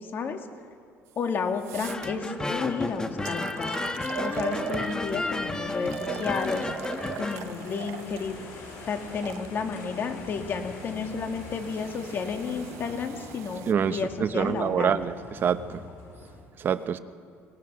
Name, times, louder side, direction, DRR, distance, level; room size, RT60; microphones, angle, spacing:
voice 1, 0.0-0.4 1.2-3.8 4.2-6.6 7.2-8.4 8.9-13.6 13.9-15.0, left 5 dB, 50° left, 5 dB, 2.2 m, -32 dB
sound 1, 1.1-1.2 1.6-2.1 2.8-2.9 3.2-5.3 5.8-9.5 10.3-13.7, right 12 dB, 75° right, 0.7 m, -40 dB
sound 2, 1.8-7.4, left 2 dB, 15° left, 1.4 m, -32 dB
sound 3, 3.7-16.4, left 3 dB, 85° left, 5.4 m, -45 dB
voice 2, 13.7-15.8 16.6-17.0, right 8 dB, 45° right, 11 dB, 0.9 m, -26 dB
24.5 x 18.5 x 6.2 m, 2.3 s
cardioid pair, 100°, 5 cm